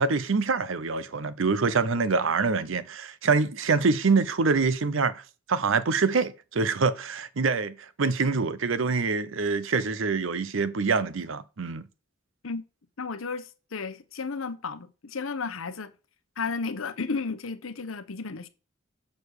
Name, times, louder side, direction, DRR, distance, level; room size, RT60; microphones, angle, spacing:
voice 1, 0.0-5.2 5.5-11.9, right 4 dB, 70° right, 0.7 m, -25 dB
voice 2, 13.0-15.9 16.4-18.5, left 4 dB, 90° left, 0.9 m, -33 dB
6.6 x 5.1 x 6.3 m
head